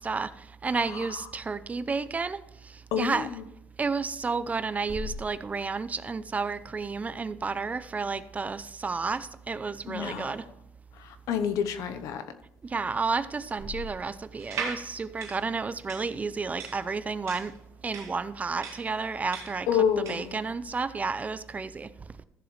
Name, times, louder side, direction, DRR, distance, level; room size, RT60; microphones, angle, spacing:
voice 1, 0.0-3.3 3.8-10.5 12.6-17.5 17.8-19.7 20.0-21.9, right 4 dB, 25° right, 0.5 m, -31 dB
voice 2, 2.9-3.4 9.9-10.4 11.0-12.2 19.7-20.4, left 8 dB, 75° left, 0.9 m, -28 dB
sound 1, 4.9-5.6 6.6-7.1 8.3-8.4 8.7-8.8 9.7-10.1 10.4-10.5 12.5-12.6 13.0-13.2 13.6-14.3, left 2 dB, 50° right, 2.7 m, -41 dB
sound 2, 14.4-20.4, right 6 dB, 70° right, 2.2 m, -39 dB
15.0 x 7.1 x 3.2 m
cardioid pair, 100°, 6 cm